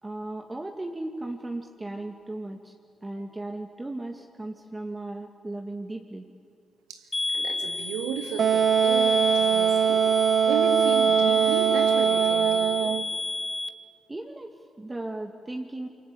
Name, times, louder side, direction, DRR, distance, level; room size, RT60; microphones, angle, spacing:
voice 1, 0.0-2.7 3.0-6.3 14.1-15.9, right 2 dB, 20° right, 3 dB, 2.2 m, -36 dB
sound 1, 7.1-13.7, left 2 dB, 30° left, 2.1 m, -30 dB
voice 2, 7.3-10.1 10.5-13.0, right 6 dB, 85° right, 5 dB, 2.3 m, -34 dB
Wind instrument woodwind instrument, 8.4-13.1, right 8 dB, 60° right, 0.8 m, -22 dB
27.0 x 24.5 x 8.6 m, 2.3 s
hypercardioid pair, 50°, 0 cm